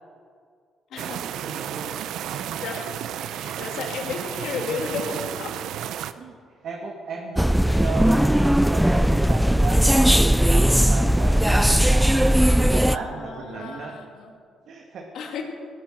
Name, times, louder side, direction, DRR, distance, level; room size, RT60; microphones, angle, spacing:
sound 1, 1.0-6.1, right 10 dB, 85° right, 0.6 m, -32 dB
voice 1, 1.4-1.9 3.2-3.3 6.2-6.4 6.6-13.9 14.7-15.1, right 4 dB, 60° right, 0 dB, 1.8 m, -35 dB
voice 2, 2.3-3.0 3.3-5.6 7.7-7.9 12.9-14.3 15.1-15.4, left 5 dB, 70° left, 2 dB, 2.6 m, -33 dB
sound 2, 7.4-13.0, equal, ahead, 0.4 m, -18 dB
19.0 x 11.5 x 6.4 m, 2.2 s
cardioid pair, 120°, 0 cm